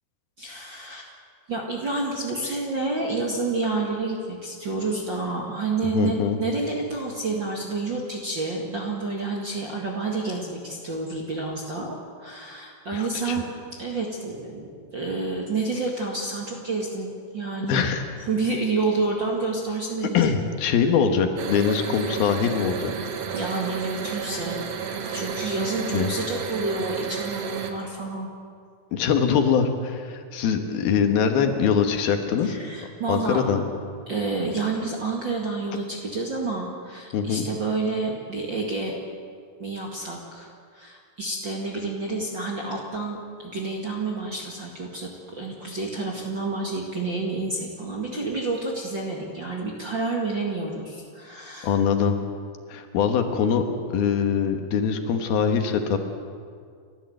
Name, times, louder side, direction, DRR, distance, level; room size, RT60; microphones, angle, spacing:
voice 1, 0.4-1.1 1.5-13.5 13.7-17.8 18.3-20.3 23.3-24.6 25.1-28.3 32.4-33.4 34.1-39.0 39.6-51.8, right 3 dB, 40° right, -1 dB, 1.9 m, -29 dB
voice 2, 5.9-6.4 12.9-13.4 17.7-18.0 20.1-22.9 25.9-26.1 28.9-32.6 33.1-33.7 37.1-37.5 51.6-52.2 52.7-53.6 53.9-56.0, left 7 dB, 70° left, 6 dB, 3.1 m, -23 dB
sound 1, 21.4-27.7, right 6 dB, 60° right, 1.7 m, -32 dB
30.0 x 13.0 x 7.9 m, 2.1 s
omnidirectional pair, 4.6 m